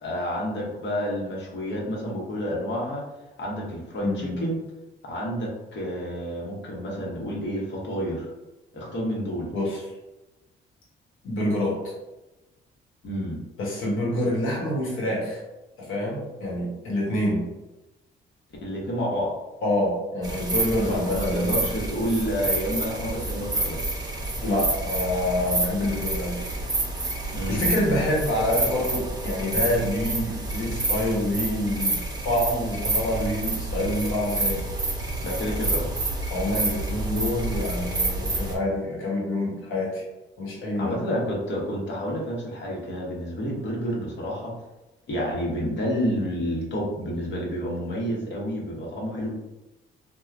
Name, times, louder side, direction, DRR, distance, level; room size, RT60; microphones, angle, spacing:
voice 1, 0.0-3.0 3.4-4.6 5.0-8.3 8.7-9.5 13.0-13.4 18.6-19.3 20.8-23.9 27.3-27.7 35.2-35.9 40.8-44.5 45.1-49.3, equal, 65° left, -2 dB, 1.0 m, -29 dB
voice 2, 4.0-4.5 9.5-9.8 11.2-11.9 13.6-15.4 15.8-17.5 19.6-21.7 24.4-26.4 27.5-34.7 36.3-40.0 40.4-41.0, left 1 dB, 90° left, -3 dB, 1.1 m, -27 dB
sound 1, 20.2-38.5, right 2 dB, 20° right, 0.6 m, -29 dB
3.2 x 2.2 x 2.4 m, 1.0 s
cardioid pair, 90°, 20 cm